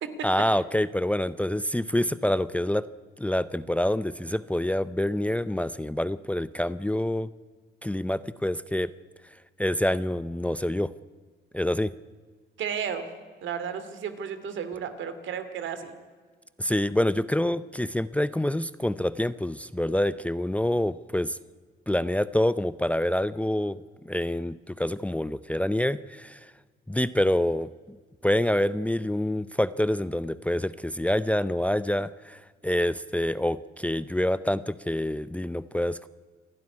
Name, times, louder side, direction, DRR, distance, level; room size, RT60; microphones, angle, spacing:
voice 1, 0.2-2.9 3.2-7.3 7.8-8.9 9.6-10.9 11.5-11.9 16.6-21.4 21.9-26.5 26.9-27.7 28.2-36.1, left 1 dB, 5° left, 15 dB, 0.6 m, -27 dB
voice 2, 12.6-13.1 13.4-15.9, right 7 dB, 75° right, 10 dB, 2.5 m, -33 dB
27.5 x 12.0 x 9.7 m, 1.5 s
cardioid pair, 90°, 20 cm